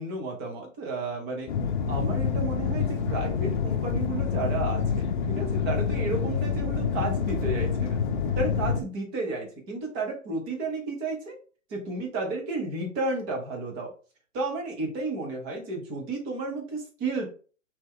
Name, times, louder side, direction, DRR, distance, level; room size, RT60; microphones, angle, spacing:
voice 1, 0.0-1.5 1.9-8.0 8.4-11.4 11.7-13.9 14.3-17.3, right 3 dB, 10° right, 1 dB, 0.4 m, -32 dB
sound 1, 1.5-8.8, left 6 dB, 40° left, 0.6 m, -27 dB
4.2 x 3.2 x 3.6 m, 0.38 s
hypercardioid pair, 140°, 40 cm